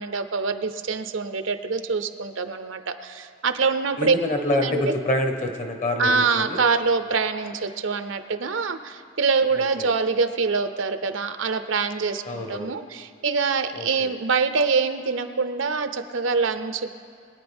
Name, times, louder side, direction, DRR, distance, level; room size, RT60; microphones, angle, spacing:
voice 1, 0.0-4.1 4.6-4.8 6.0-16.9, right 4 dB, 65° right, 9 dB, 0.6 m, -25 dB
voice 2, 4.0-6.6 9.5-9.9 12.2-12.7 13.7-14.1, left 1 dB, 35° left, 5 dB, 1.2 m, -26 dB
23.0 x 9.4 x 3.5 m, 2.4 s
head